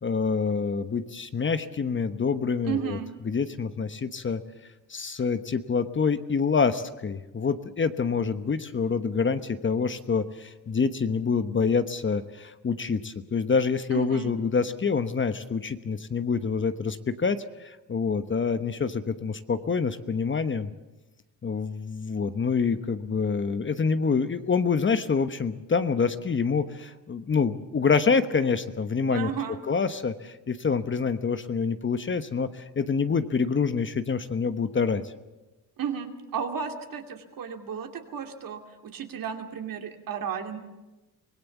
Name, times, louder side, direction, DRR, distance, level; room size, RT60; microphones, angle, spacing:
voice 1, 0.0-3.0 3.2-4.4 4.9-20.7 21.4-29.3 29.7-35.1, left 5 dB, 30° left, 11 dB, 1.1 m, -26 dB
voice 2, 2.6-3.1 13.9-14.3 29.1-29.6 35.8-40.6, right 7 dB, 60° right, 5 dB, 2.7 m, -33 dB
24.5 x 18.0 x 7.3 m, 1.1 s
cardioid pair, 80°, 39 cm